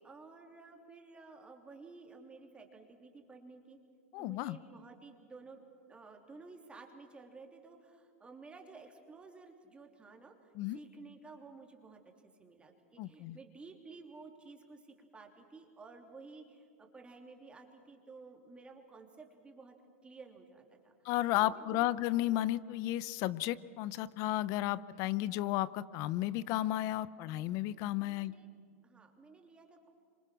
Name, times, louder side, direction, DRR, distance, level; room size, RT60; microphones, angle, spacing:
voice 1, 0.0-3.8 4.2-5.6 5.9-19.7 20.0-20.9 21.3-21.9 28.0-28.5 28.8-29.9, right 3 dB, 15° right, 3 dB, 3.0 m, -53 dB
voice 2, 4.1-4.6 10.6-10.8 13.0-13.4 21.0-28.3, left 15 dB, 50° left, 18 dB, 0.8 m, -33 dB
26.5 x 26.0 x 6.2 m, 2.1 s
hypercardioid pair, 125°, 7 cm